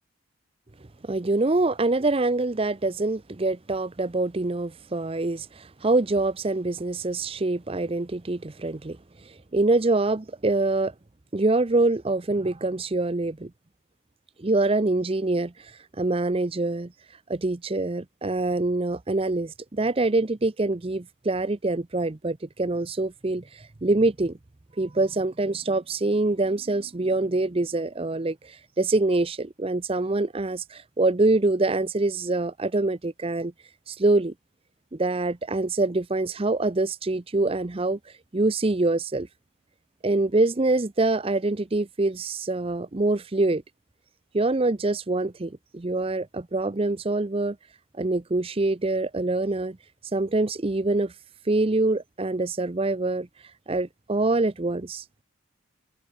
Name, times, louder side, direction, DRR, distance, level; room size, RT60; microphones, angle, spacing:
voice 1, 1.0-9.0 9.5-10.9 11.3-13.5 14.4-15.5 16.0-16.9 17.3-24.4 24.8-33.5 33.9-34.3 34.9-38.0 38.3-39.3 40.0-43.6 44.3-47.6 48.0-49.8 50.1-51.1 51.5-53.3 53.7-55.0, right 2 dB, 25° right, 0.6 m, -25 dB
head